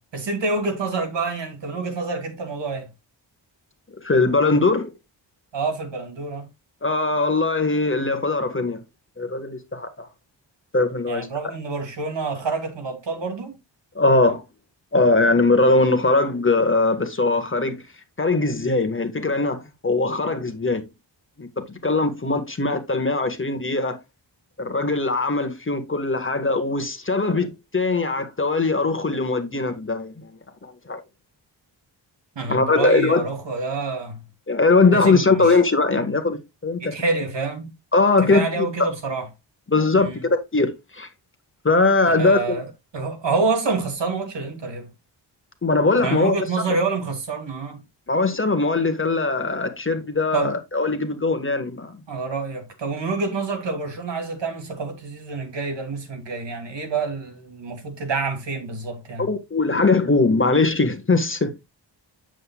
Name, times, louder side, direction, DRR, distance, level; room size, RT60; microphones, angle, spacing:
voice 1, 0.1-2.9 5.5-6.5 11.1-13.6 32.4-34.2 34.9-35.6 36.8-37.7 38.2-39.3 40.0-40.2 42.0-42.7 42.9-44.9 46.0-47.8 50.3-50.6 52.1-59.3, right 4 dB, 65° right, 2.8 m, -27 dB
voice 2, 4.0-4.9 6.8-8.8 9.2-10.1 10.7-11.3 13.9-14.4 14.9-17.8 18.2-20.9 21.4-24.0 24.6-31.0 32.5-33.2 34.5-36.9 37.9-38.7 39.7-41.1 41.6-42.6 45.6-46.3 48.1-52.0 59.2-61.5, left 3 dB, 25° left, 1.5 m, -21 dB
9.2 x 7.7 x 2.3 m
wide cardioid pair, 105°, 46 cm